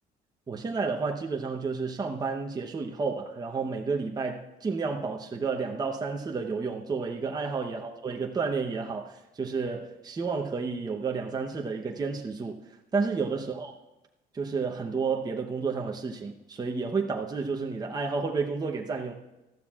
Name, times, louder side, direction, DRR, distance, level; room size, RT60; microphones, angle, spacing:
voice 1, 0.5-12.6 12.9-13.7 14.3-19.1, right 4 dB, 25° right, 0 dB, 0.9 m, -31 dB
19.0 x 13.5 x 2.5 m, 1.0 s
cardioid pair, 110°, 17 cm